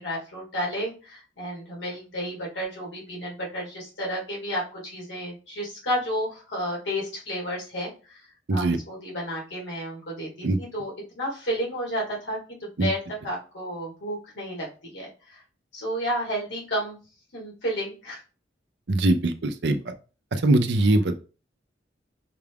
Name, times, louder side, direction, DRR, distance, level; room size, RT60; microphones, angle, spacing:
voice 1, 0.0-8.2 8.5-13.0 13.2-15.4 15.7-17.0 17.3-18.2, equal, 85° left, -3 dB, 1.9 m, -32 dB
voice 2, 18.9-19.9 20.3-21.1, right 2 dB, 70° right, 8 dB, 0.6 m, -22 dB
5.7 x 2.4 x 3.4 m, 0.34 s
head